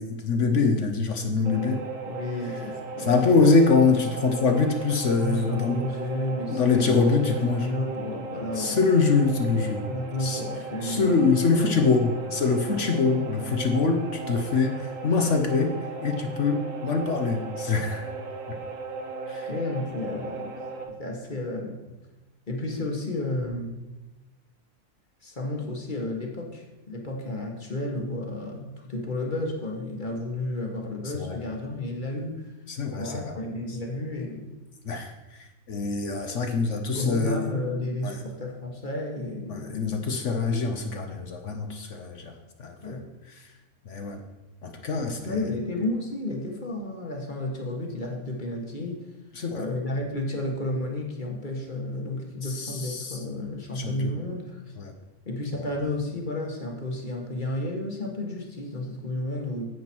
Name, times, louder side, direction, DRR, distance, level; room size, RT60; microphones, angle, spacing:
voice 1, 0.0-1.8 3.0-5.8 6.5-7.7 8.5-9.9 10.2-10.4 10.8-15.7 16.0-18.1 18.5-18.6 19.3-19.5 31.1-31.4 32.7-33.3 34.8-35.1 35.7-37.4 38.0-38.2 39.5-42.3 42.6-43.0 43.9-44.2 44.6-45.4 49.4-49.6 51.9-53.2 53.7-54.1 54.8-54.9, left 4 dB, 55° left, 5 dB, 1.2 m, -24 dB
sound 1, 1.4-20.8, right 3 dB, 60° right, 1.5 m, -37 dB
voice 2, 2.0-3.3 5.2-8.8 9.9-11.4 12.8-12.9 13.9-14.1 19.5-20.6 21.0-21.8 22.5-23.7 25.2-32.5 32.9-34.5 36.9-40.0 42.8-43.1 45.1-49.1 49.5-54.6 55.3-59.6, left 1 dB, 30° left, 1 dB, 1.5 m, -32 dB
9.5 x 7.9 x 4.5 m, 1.1 s
omnidirectional pair, 1.6 m